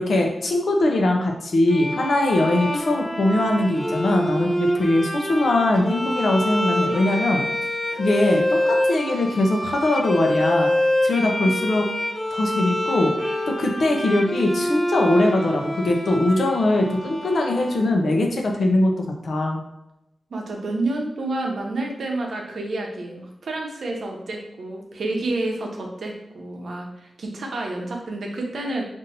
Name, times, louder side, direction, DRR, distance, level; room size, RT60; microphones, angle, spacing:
voice 1, 0.0-7.4 7.9-10.7 11.0-11.9 12.3-18.9 19.2-19.6, left 1 dB, 65° left, 2 dB, 0.7 m, -21 dB
Bowed string instrument, 1.7-18.2, left 1 dB, 25° left, 0.6 m, -26 dB
voice 2, 20.3-28.8, right 2 dB, 70° right, 0 dB, 0.8 m, -29 dB
5.2 x 2.7 x 2.8 m, 0.88 s
wide cardioid pair, 115°, 0 cm